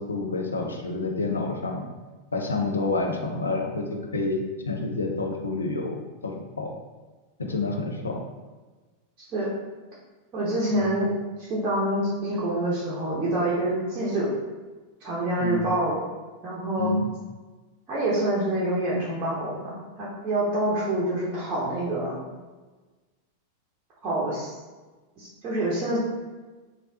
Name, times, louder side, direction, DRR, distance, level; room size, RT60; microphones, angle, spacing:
voice 1, 0.0-1.8 2.3-6.7 7.4-8.2 10.7-10.9 15.4-15.6 16.8-17.1, left 3 dB, 75° left, 2 dB, 0.4 m, -29 dB
voice 2, 10.3-11.1 11.4-14.3 15.0-16.1 16.4-16.9 17.9-22.2 24.0-24.5 25.2-26.0, right 1 dB, 30° right, -7 dB, 0.8 m, -26 dB
3.2 x 2.6 x 2.8 m, 1.3 s
figure-of-eight pair, 90°, 0 cm